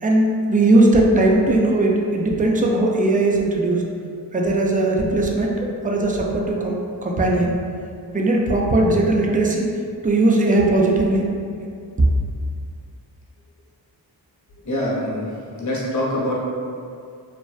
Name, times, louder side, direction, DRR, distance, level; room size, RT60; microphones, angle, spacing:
voice 1, 0.0-3.8 4.3-5.5 5.8-7.5 8.1-9.7 10.0-11.3, right 2 dB, 20° right, -1 dB, 0.3 m, -18 dB
voice 2, 14.6-16.3, left 1 dB, 45° left, -5 dB, 0.7 m, -25 dB
2.5 x 2.1 x 2.3 m, 2.3 s
cardioid pair, 50°, 42 cm